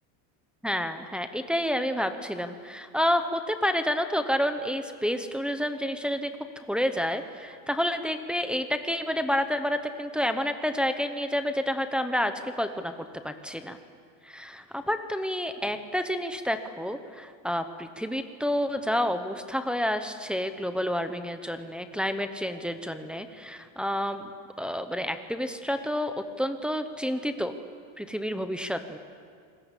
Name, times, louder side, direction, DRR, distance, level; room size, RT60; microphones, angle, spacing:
voice 1, 0.6-6.3 6.6-12.9 13.2-13.8 14.2-24.3 24.6-27.5 28.0-29.0, equal, ahead, 7 dB, 0.8 m, -29 dB
28.0 x 20.5 x 8.2 m, 2.1 s
cardioid pair, 170°, 39 cm